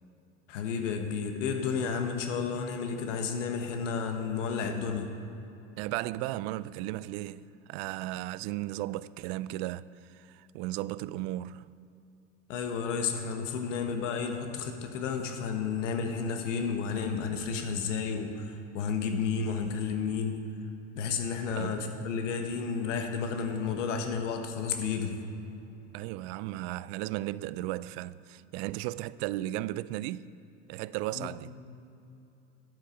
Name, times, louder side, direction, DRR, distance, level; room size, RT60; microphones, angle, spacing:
voice 1, 0.5-5.1 12.5-20.4 20.9-25.2 31.2-31.3, left 6 dB, 75° left, 1.2 m, -32 dB
voice 2, 5.8-11.7 21.6-21.9 25.9-30.3 30.7-31.5, right 16 dB, 60° right, 0.4 m, -35 dB
11.0 x 8.3 x 5.7 m
hypercardioid pair, 85°, 37 cm